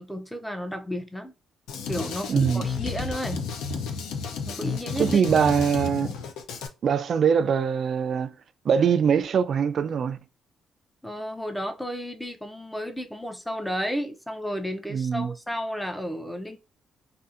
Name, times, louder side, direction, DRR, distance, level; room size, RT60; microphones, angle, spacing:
voice 1, 0.0-1.3 1.9-3.4 4.5-5.2 11.0-16.6, equal, 5° left, 0.5 m, -32 dB
Drum kit, 1.7-6.7, left 5 dB, 90° left, 0.4 m, -32 dB
voice 2, 2.3-2.6 5.0-6.1 6.8-8.4 8.6-10.2 14.9-15.3, right 7 dB, 55° right, 0.3 m, -22 dB
2.6 x 2.4 x 2.4 m
cardioid pair, 90°, 0 cm